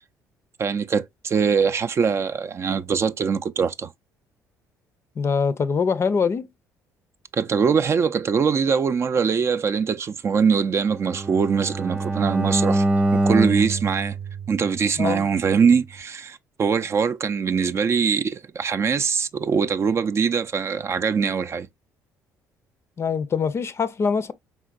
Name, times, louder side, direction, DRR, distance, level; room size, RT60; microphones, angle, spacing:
voice 1, 0.6-3.9 7.3-12.9 13.1-14.2 14.5-21.7, right 6 dB, 40° right, 0.4 m, -22 dB
voice 2, 5.2-6.5 15.0-15.3 23.0-24.3, left 5 dB, 40° left, 0.5 m, -23 dB
Bowed string instrument, 10.9-15.0, right 2 dB, 20° right, 0.9 m, -24 dB
4.4 x 3.6 x 2.3 m
supercardioid pair, 70°, 7 cm